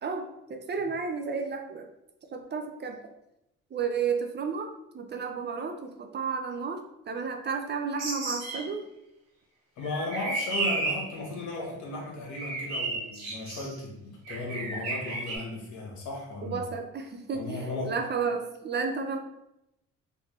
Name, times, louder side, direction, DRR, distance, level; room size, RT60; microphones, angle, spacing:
voice 1, 0.0-1.9 2.3-3.0 3.7-4.7 4.9-6.8 7.1-8.8 16.4-17.6 17.8-19.2, right 5 dB, 35° right, 5 dB, 0.5 m, -32 dB
sound 1, 7.9-8.7 9.8-11.2 12.3-13.7 14.2-15.4, right 3 dB, 65° right, 1.2 m, -32 dB
voice 2, 9.8-16.6 17.3-18.0, left 2 dB, 75° left, -1 dB, 1.1 m, -35 dB
3.4 x 2.6 x 3.1 m, 0.85 s
cardioid pair, 90°, 30 cm